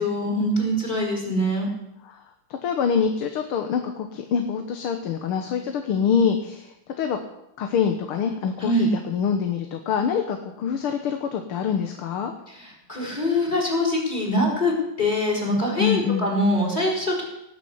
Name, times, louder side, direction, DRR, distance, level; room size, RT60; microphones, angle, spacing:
voice 1, 0.0-1.7 8.6-8.9 12.6-17.2, left 1 dB, 20° left, -1 dB, 4.1 m, -23 dB
voice 2, 2.5-7.2 7.6-12.3 15.8-16.3, left 7 dB, 80° left, 6 dB, 2.0 m, -25 dB
18.0 x 6.7 x 8.0 m, 0.84 s
omnidirectional pair, 2.3 m